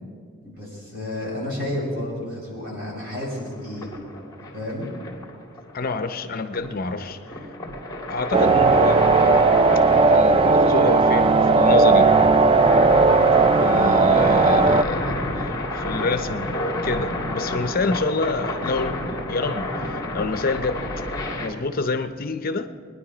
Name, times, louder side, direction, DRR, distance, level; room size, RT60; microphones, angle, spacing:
voice 1, 0.4-3.9 4.5-4.9, left 1 dB, 50° right, -3 dB, 5.1 m, -31 dB
sound 1, 3.1-21.5, left 1 dB, 15° left, 2.3 m, -30 dB
voice 2, 5.7-7.4 8.1-9.1 10.1-12.1 13.6-16.5 16.8-20.9 21.4-22.7, left 3 dB, 45° left, 9 dB, 0.7 m, -27 dB
sound 2, 8.3-14.8, right 3 dB, 25° right, 0.3 m, -16 dB
22.0 x 10.5 x 5.0 m, 2.2 s
head